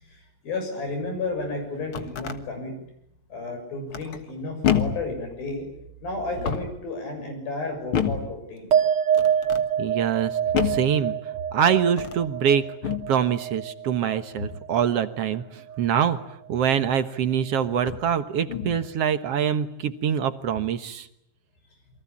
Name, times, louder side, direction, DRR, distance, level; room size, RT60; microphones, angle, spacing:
voice 1, 0.0-2.7 3.3-5.7 6.0-8.8, left 2 dB, 80° left, 4 dB, 8.6 m, -32 dB
sound 1, 1.6-2.4 3.9-4.3 4.6-5.1 6.2-6.8 7.9-8.3 9.1-9.7 10.5-10.9 11.9-12.3 12.8-13.1 14.4-14.7 16.8-16.9 17.8-18.1 18.5-18.9, left 8 dB, 50° left, 1.8 m, -28 dB
sound 2, 8.7-15.4 15.7-16.3, right 8 dB, 40° right, 3.0 m, -27 dB
voice 2, 9.8-11.1 11.5-16.2 16.5-21.1, right 8 dB, 60° right, 10 dB, 1.7 m, -24 dB
29.0 x 24.0 x 8.6 m, 0.73 s
omnidirectional pair, 4.1 m